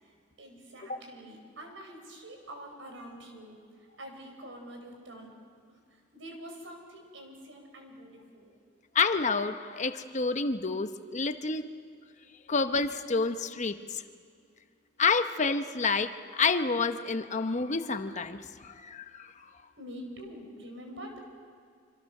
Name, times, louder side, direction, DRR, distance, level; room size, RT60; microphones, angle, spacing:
voice 1, 0.0-5.3 5.7-8.6 19.8-21.2, equal, 85° right, 3 dB, 5.1 m, -46 dB
voice 2, 8.9-11.6 12.5-14.0 15.0-19.3, left 4 dB, 40° left, 9 dB, 1.0 m, -29 dB
26.0 x 26.0 x 6.6 m, 2.2 s
head